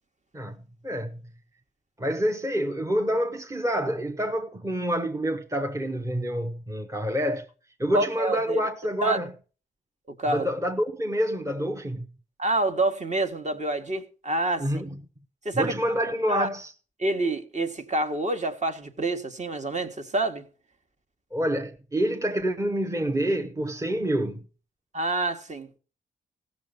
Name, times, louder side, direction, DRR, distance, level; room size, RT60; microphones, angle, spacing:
voice 1, 0.8-1.2 2.0-7.5 7.8-9.3 10.3-12.1 14.6-15.0 15.5-16.7 21.3-24.5, equal, 15° right, 1.1 m, -27 dB
voice 2, 7.9-8.6 9.0-9.2 10.2-10.5 12.4-14.7 15.5-15.8 16.3-16.5 17.0-20.4 24.9-25.7, right 2 dB, 35° right, 1.7 m, -27 dB
15.5 x 6.9 x 5.3 m
supercardioid pair, 50°, 20 cm